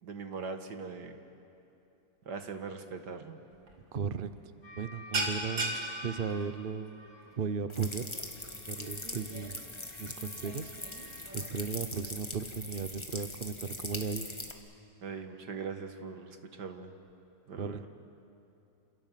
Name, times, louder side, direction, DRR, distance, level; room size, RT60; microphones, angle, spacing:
voice 1, 0.0-1.2 2.3-3.4 15.0-16.9 17.5-17.9, right 5 dB, 65° right, 6 dB, 2.1 m, -41 dB
sound 1, 3.5-3.8 4.1-4.4 4.6-11.5, right 2 dB, 85° right, 3.8 m, -39 dB
voice 2, 3.9-4.3 4.7-5.8 6.0-7.0 7.4-8.0 8.7-9.6 10.0-10.7 11.3-14.3 17.6-17.8, right 6 dB, 45° right, 11 dB, 0.8 m, -36 dB
sound 2, 4.6-7.4 8.1-11.3, equal, 40° left, 5.6 m, -52 dB
sound 3, 7.7-14.5, left 2 dB, 15° left, 1.7 m, -42 dB
28.0 x 27.5 x 7.6 m, 2.8 s
omnidirectional pair, 2.0 m